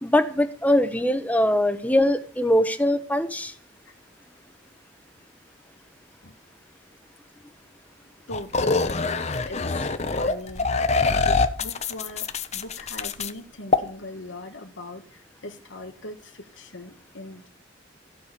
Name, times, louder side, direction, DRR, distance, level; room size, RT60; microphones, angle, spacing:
voice 1, 0.0-3.5, left 1 dB, 10° left, 10 dB, 1.1 m, -22 dB
voice 2, 8.3-8.9 9.5-10.7 11.2-12.3 12.5-17.5, left 2 dB, 80° left, 3 dB, 1.6 m, -40 dB
sound 1, 8.3-13.3 13.7-13.8, left 4 dB, 35° left, 1.0 m, -24 dB
15.5 x 6.5 x 9.8 m, 0.44 s
head